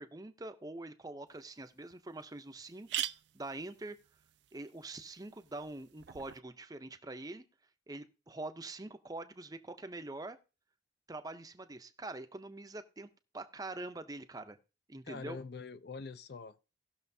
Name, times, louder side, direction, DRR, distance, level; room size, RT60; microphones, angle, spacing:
voice 1, 0.0-2.9 3.3-4.0 4.5-7.4 7.9-10.4 11.1-13.1 13.3-14.6 14.9-15.4, right 2 dB, 20° right, 0.6 m, -44 dB
sound 1, 1.3-1.4 1.9-2.0 2.2-2.3 2.6-6.4, right 12 dB, 65° right, 0.4 m, -43 dB
voice 2, 15.0-16.6, left 4 dB, 55° left, 0.5 m, -44 dB
18.0 x 6.3 x 2.7 m
head